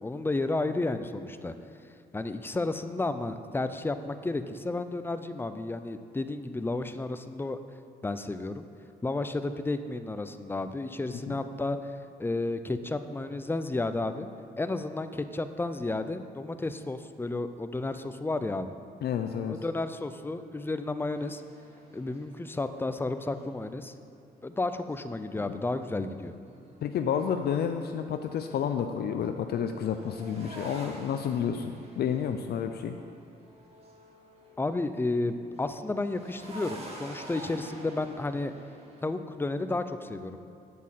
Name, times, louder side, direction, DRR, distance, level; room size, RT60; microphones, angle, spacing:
voice 1, 0.0-1.5 2.1-7.6 8.0-8.6 9.0-11.8 12.2-14.3 14.6-18.7 19.5-21.4 21.9-23.9 24.4-26.3 34.6-38.5 39.0-40.4, left 2 dB, 10° left, 10 dB, 0.5 m, -32 dB
voice 2, 19.0-19.6 25.4-25.5 26.8-33.0, left 8 dB, 65° left, 7 dB, 0.5 m, -30 dB
sound 1, 21.1-24.0 24.9-27.5 29.2-34.7 35.0-39.1, right 2 dB, 35° right, 1.9 m, -48 dB
8.5 x 8.1 x 7.5 m, 2.4 s
cardioid pair, 135°, 17 cm